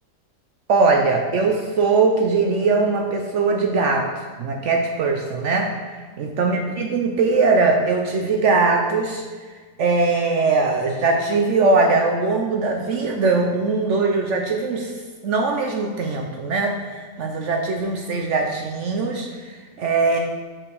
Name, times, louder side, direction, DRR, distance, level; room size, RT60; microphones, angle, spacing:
voice 1, 0.7-5.7 6.2-9.2 9.8-15.0 15.2-20.2, right 3 dB, 65° right, 3 dB, 0.7 m, -21 dB
6.0 x 5.0 x 4.7 m, 1.4 s
omnidirectional pair, 1.7 m